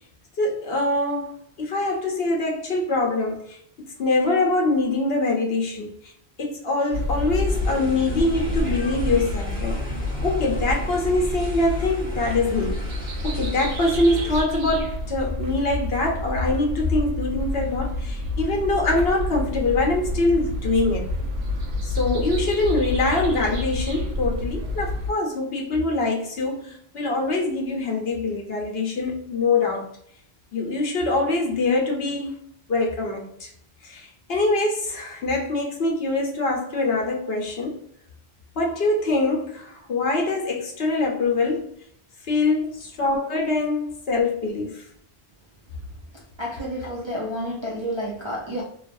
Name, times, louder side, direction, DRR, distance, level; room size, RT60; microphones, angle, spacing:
voice 1, 0.4-1.3 1.6-3.6 4.0-6.1 6.4-9.8 10.2-12.9 13.2-21.1 21.8-29.9 30.5-32.4 32.7-33.5 33.8-37.8 38.6-41.7 42.3-44.8, left 2 dB, 70° left, 1.0 m, -24 dB
sound 1, 6.9-25.1, left 1 dB, 75° right, 1.0 m, -28 dB
sound 2, 7.5-14.4, right 1 dB, 10° left, 0.6 m, -37 dB
voice 2, 46.4-48.6, equal, 40° right, 0.4 m, -30 dB
2.9 x 2.3 x 2.4 m
omnidirectional pair, 1.1 m